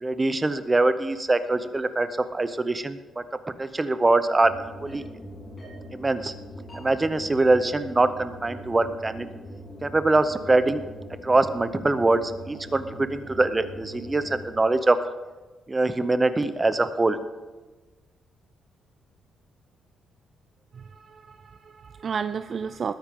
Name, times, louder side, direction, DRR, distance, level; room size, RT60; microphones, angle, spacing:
voice 1, 0.0-3.2 3.6-4.5 4.8-5.1 5.9-6.3 6.7-9.3 9.8-10.8 11.2-15.0 15.7-17.2, right 2 dB, 15° right, 11 dB, 0.7 m, -23 dB
sound 1, 4.4-14.6, equal, 20° left, 3.8 m, -42 dB
voice 2, 20.7-22.9, right 6 dB, 40° right, 12 dB, 0.3 m, -32 dB
20.0 x 9.8 x 3.6 m, 1.2 s
cardioid pair, 155°, 0 cm